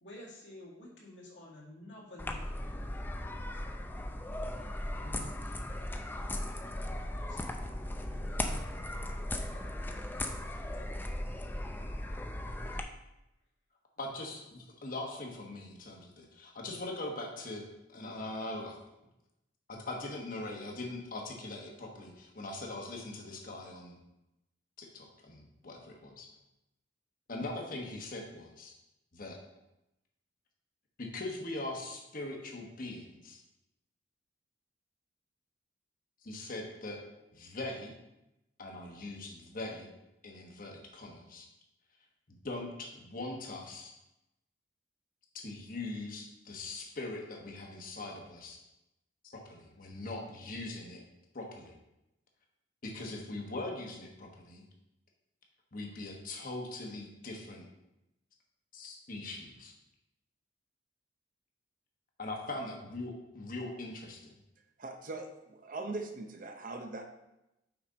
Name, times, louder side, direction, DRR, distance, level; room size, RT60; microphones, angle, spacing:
voice 1, 0.0-2.4 5.0-5.5 7.1-7.4 8.1-8.8 11.8-12.5, left 1 dB, 70° left, -5 dB, 2.1 m, -51 dB
sound 1, 2.2-12.8, left 1 dB, 10° left, 0.4 m, -37 dB
voice 2, 14.0-17.6 17.9-18.8 19.7-24.0 24.8-26.3 27.3-28.7 29.1-29.4 31.0-33.4 36.2-37.0 37.3-37.9 38.6-39.9 40.2-41.5 42.3-43.9 45.3-48.6 49.2-51.0 51.3-51.8 52.8-54.7 55.7-57.6 58.7-59.7 62.2-64.3, left 2 dB, 45° left, 0 dB, 1.1 m, -41 dB
voice 3, 64.8-67.1, right 2 dB, 45° right, 4 dB, 0.6 m, -41 dB
5.9 x 5.2 x 3.9 m, 0.90 s
head